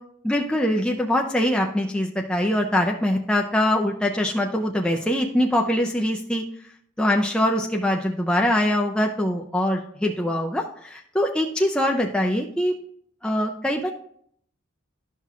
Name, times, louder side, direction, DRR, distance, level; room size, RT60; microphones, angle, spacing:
voice 1, 0.2-6.4 7.0-12.7 13.2-13.9, left 1 dB, 5° left, 1 dB, 0.4 m, -23 dB
11.5 x 5.7 x 2.4 m, 0.66 s
head